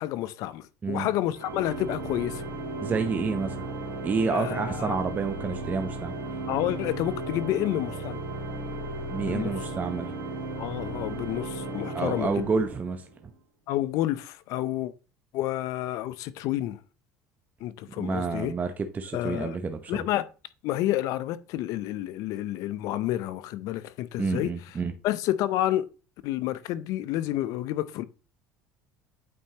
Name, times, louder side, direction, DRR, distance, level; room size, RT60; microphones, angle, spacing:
voice 1, 0.0-2.4 4.3-5.0 6.5-8.2 9.2-9.5 10.6-12.5 13.7-14.9 15.3-16.8 17.6-18.5 19.1-19.6 19.9-20.3 20.6-24.5 25.0-25.8 26.2-28.0, left 14 dB, 65° left, 0.5 m, -29 dB
Organ, 1.3-13.2, right 2 dB, 85° right, 2.4 m, -35 dB
voice 2, 2.8-3.5 4.0-6.1 9.1-10.1 11.9-13.0 18.0-20.1 24.2-24.9, right 4 dB, 25° right, 0.7 m, -29 dB
8.6 x 4.4 x 2.8 m
supercardioid pair, 105°, 6 cm